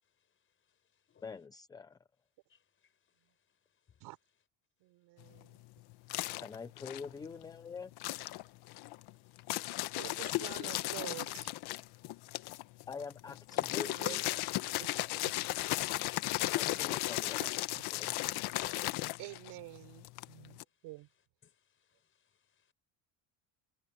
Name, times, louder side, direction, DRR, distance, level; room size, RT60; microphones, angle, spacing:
voice 1, 0.0-1.3 2.5-4.0 5.2-5.3 5.9-6.4 8.8-10.0 12.4-12.9 18.6-19.2 20.7-20.9 21.4-22.7, left 8 dB, 30° left, 5.4 m, -61 dB
voice 2, 1.2-2.0 6.4-7.9 12.9-14.2 16.3-17.6 17.9-18.1, left 5 dB, 10° left, 0.3 m, -45 dB
voice 3, 4.8-5.6 7.2-7.5 10.0-11.5 13.7-14.2 14.8-14.9 15.2-15.3 17.4-17.5 19.2-21.1, right 19 dB, 70° right, 4.0 m, -48 dB
sound 1, 5.2-7.6 7.9-20.6, left 18 dB, 65° left, 1.4 m, -36 dB
cardioid pair, 165°, 42 cm